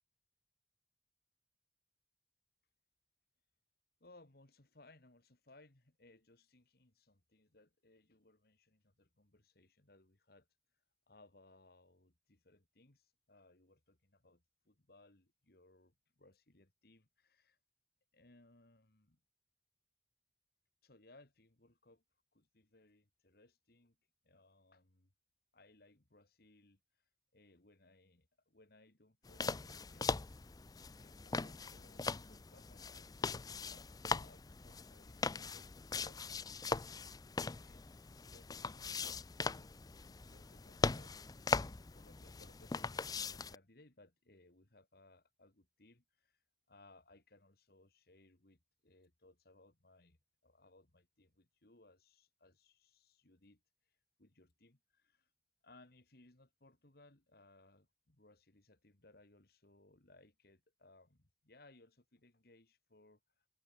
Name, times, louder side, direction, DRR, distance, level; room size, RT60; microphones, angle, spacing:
voice 1, 4.0-10.5 10.7-17.6 18.1-19.2 20.8-22.0 22.3-24.0 24.2-25.1 25.5-30.4 30.9-33.1 33.3-37.4 37.6-39.2 39.4-39.7 40.0-50.2 50.4-55.3 55.6-63.5, left 2 dB, 60° left, 2.3 m, -66 dB
sound 1, 29.3-43.6, left 4 dB, 20° left, 0.5 m, -40 dB
head